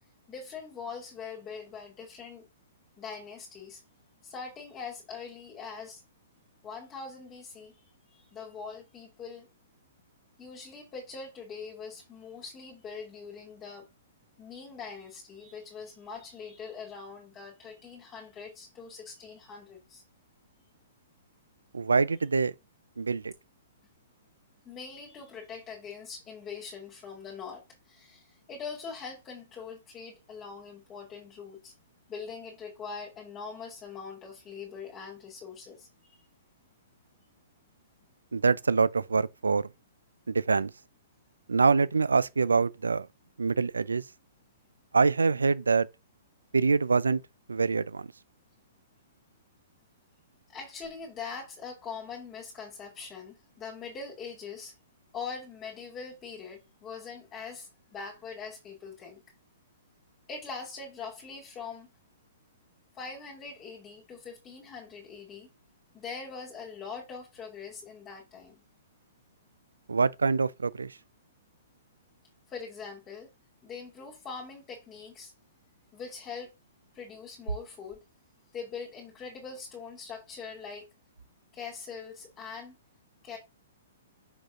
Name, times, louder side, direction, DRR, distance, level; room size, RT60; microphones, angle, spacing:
voice 1, 0.3-2.5 3.0-3.8 4.2-6.0 6.6-7.8 8.1-9.5 10.4-13.9 14.4-20.0 24.6-31.7 32.1-35.9 50.5-54.7 55.1-59.2 60.3-61.9 62.9-65.5 65.9-68.6 72.5-73.3 73.6-75.3 75.9-76.5 76.9-78.0 78.5-80.8 81.5-82.8 83.2-83.4, left 5 dB, 25° left, 2.4 m, -42 dB
voice 2, 21.7-22.5 23.0-23.3 38.3-39.7 40.3-40.7 41.5-43.1 43.4-44.0 44.9-45.9 46.5-47.2 47.5-48.1 69.9-70.9, right 4 dB, 85° right, 0.5 m, -25 dB
5.9 x 5.2 x 3.8 m
hypercardioid pair, 120°, 0 cm